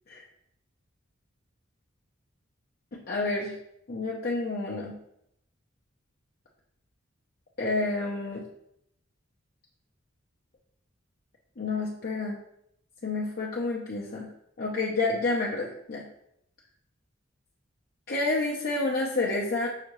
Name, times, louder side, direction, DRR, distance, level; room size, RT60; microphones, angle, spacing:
voice 1, 2.9-3.6 3.9-5.0 7.6-8.4 11.6-12.4 13.0-14.3 14.6-16.1 18.1-19.7, left 3 dB, 50° left, -4 dB, 0.6 m, -29 dB
5.7 x 2.7 x 3.0 m, 0.75 s
head